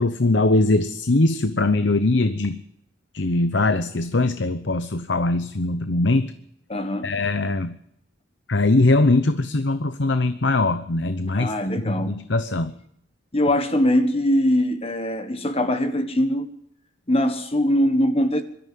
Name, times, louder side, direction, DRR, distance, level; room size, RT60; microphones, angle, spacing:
voice 1, 0.0-2.6 3.1-6.3 7.0-7.7 8.5-11.5 11.8-12.7, left 2 dB, 60° left, 0.9 m, -21 dB
voice 2, 6.7-7.1 11.3-12.2 13.3-16.5 17.1-18.4, left 1 dB, 30° left, 1.5 m, -22 dB
21.5 x 13.5 x 9.4 m
head